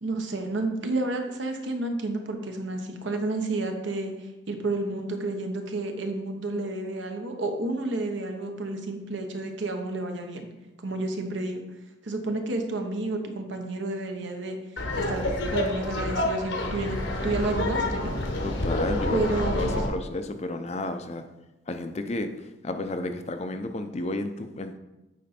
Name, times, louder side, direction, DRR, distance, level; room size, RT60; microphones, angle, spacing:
voice 1, 0.0-4.1 4.5-10.5 10.8-11.6 12.0-14.6 15.0-15.3 15.5-18.1 19.1-19.8, right 2 dB, 75° right, 4 dB, 1.1 m, -30 dB
Laughter, 14.8-19.9, left 1 dB, 80° left, 1.3 m, -28 dB
voice 2, 18.4-19.2 19.5-21.3 21.7-24.8, left 2 dB, 35° left, 8 dB, 0.5 m, -32 dB
8.4 x 5.0 x 4.3 m, 1.0 s
head